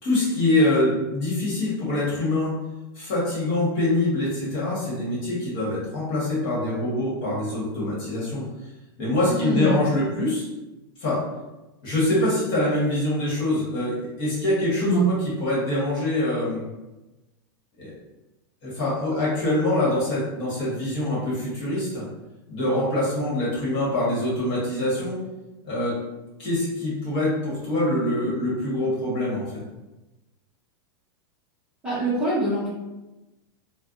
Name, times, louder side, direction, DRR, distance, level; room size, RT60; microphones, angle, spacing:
voice 1, 0.0-2.5 2.9-8.4 9.0-10.4 11.0-11.2 11.8-16.6 17.8-17.9 18.6-22.0 22.5-25.2 25.6-26.0 26.4-29.5, left 1 dB, 35° left, -7 dB, 1.3 m, -24 dB
voice 2, 9.2-9.8 14.8-15.0 31.8-32.7, equal, 5° right, -12 dB, 0.8 m, -24 dB
3.3 x 2.1 x 2.5 m, 1.0 s
supercardioid pair, 165°, 12 cm